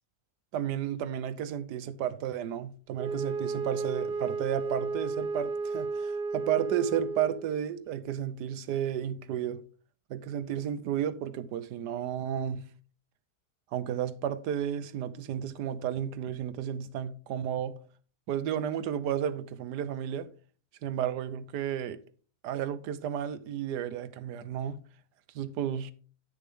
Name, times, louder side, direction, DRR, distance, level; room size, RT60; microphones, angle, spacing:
voice 1, 0.5-9.6 10.1-12.6 13.7-17.8 18.3-20.3 20.8-22.0 22.4-24.8 25.3-25.9, right 9 dB, 85° right, 1.3 m, -32 dB
Wind instrument woodwind instrument, 2.9-7.5, right 4 dB, 50° right, 0.7 m, -33 dB
11.0 x 6.8 x 3.6 m
omnidirectional pair, 1.7 m